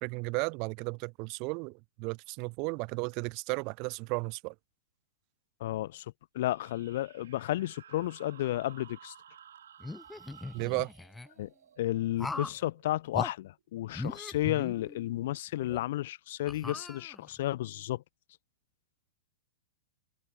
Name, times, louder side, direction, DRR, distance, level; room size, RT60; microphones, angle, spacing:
voice 1, 0.0-4.5 10.5-10.9, right 32 dB, 40° right, 0.4 m, -34 dB
voice 2, 5.6-6.1 6.3-9.1 11.4-11.5 11.8-18.0, left 15 dB, 55° left, 0.7 m, -32 dB
sound 1, 6.4-13.6, right 9 dB, 65° right, 3.2 m, -56 dB
sound 2, 9.8-11.3 12.2-12.6 13.1-13.3 13.9-15.2 15.7-15.8 16.5-17.4, left 2 dB, 5° left, 0.7 m, -39 dB
figure-of-eight pair, 100°, 0 cm